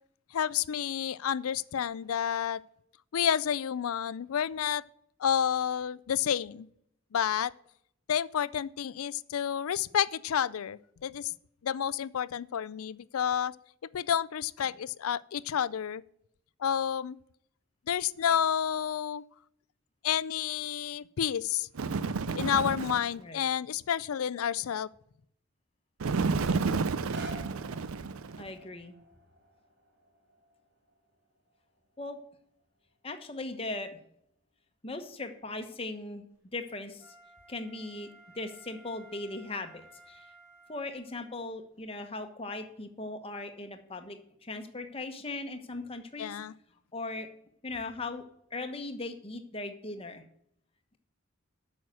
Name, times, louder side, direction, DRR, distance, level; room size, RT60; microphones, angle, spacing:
voice 1, 0.3-2.6 3.1-4.8 5.2-6.7 7.1-7.5 8.1-11.3 11.6-13.5 13.9-16.0 16.6-17.2 17.9-19.2 20.0-21.7 22.3-24.9 46.2-46.5, left 8 dB, 90° left, 20 dB, 0.4 m, -30 dB
Bird, 21.7-23.1 26.0-28.5, right 4 dB, 80° right, 0.5 m, -31 dB
voice 2, 26.5-26.8 28.4-29.0 32.0-32.2 33.0-34.0 34.8-36.2 36.5-37.1 37.5-38.1 38.3-40.3 40.7-46.4 46.9-47.3 47.6-48.2 48.5-50.2, left 2 dB, 25° left, 6 dB, 1.1 m, -39 dB
sound 1, 27.1-32.9 33.6-33.7, right 1 dB, 50° right, 1.6 m, -52 dB
Wind instrument woodwind instrument, 37.0-41.3 41.8-41.9, right 2 dB, 5° right, 3.6 m, -56 dB
8.9 x 6.4 x 7.7 m, 0.72 s
head